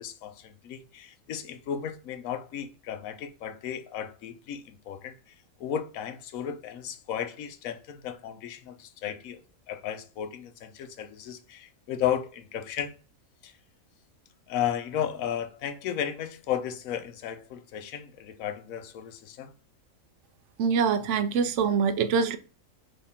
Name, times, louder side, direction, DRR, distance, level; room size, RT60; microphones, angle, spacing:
voice 1, 0.0-5.3 5.6-9.4 9.7-12.9 13.4-13.5 14.5-19.5, left 9 dB, 75° left, 1.1 m, -34 dB
voice 2, 20.6-22.4, right 6 dB, 65° right, 0.8 m, -24 dB
3.6 x 3.3 x 4.1 m
omnidirectional pair, 1.5 m